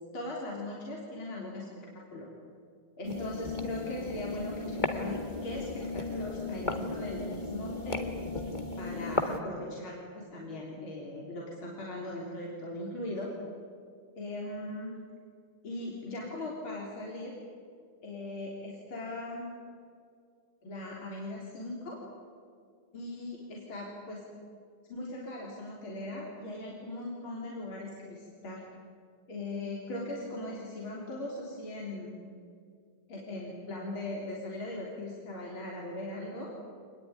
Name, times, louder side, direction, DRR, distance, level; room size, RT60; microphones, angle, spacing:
voice 1, 0.1-2.3 3.0-8.1 8.8-13.3 14.2-15.0 15.6-17.4 18.0-19.6 20.6-22.0 22.9-24.2 24.9-28.6 29.3-32.1 33.1-36.5, left 1 dB, 75° left, -3 dB, 4.5 m, -39 dB
sound 1, 3.0-9.4, left 3 dB, 25° left, 1.8 m, -35 dB
26.5 x 20.5 x 9.8 m, 2.3 s
omnidirectional pair, 2.3 m